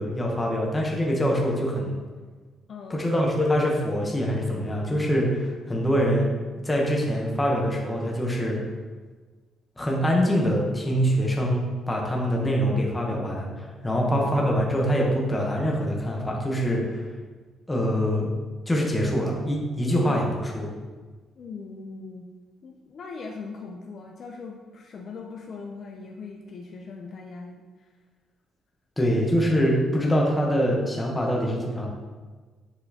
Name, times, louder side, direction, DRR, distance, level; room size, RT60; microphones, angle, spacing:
voice 1, 0.0-2.0 2.9-6.3 6.6-8.6 9.8-17.0 17.7-18.3 18.7-20.7 29.0-31.9, equal, 10° left, -2 dB, 0.9 m, -24 dB
voice 2, 2.7-3.1 13.8-14.5 19.8-20.2 21.4-22.3 22.6-27.6, left 4 dB, 45° left, 1 dB, 0.5 m, -40 dB
7.8 x 4.3 x 2.8 m, 1.4 s
cardioid pair, 155°, 0 cm